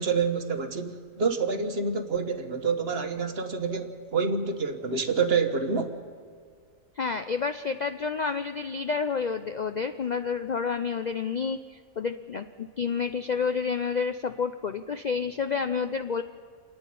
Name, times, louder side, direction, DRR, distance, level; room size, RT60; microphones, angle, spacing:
voice 1, 0.0-6.0, right 5 dB, 45° right, 7 dB, 1.3 m, -27 dB
voice 2, 7.0-16.2, left 5 dB, 80° left, 9 dB, 0.4 m, -29 dB
28.5 x 9.5 x 9.9 m, 2.1 s
omnidirectional pair, 1.5 m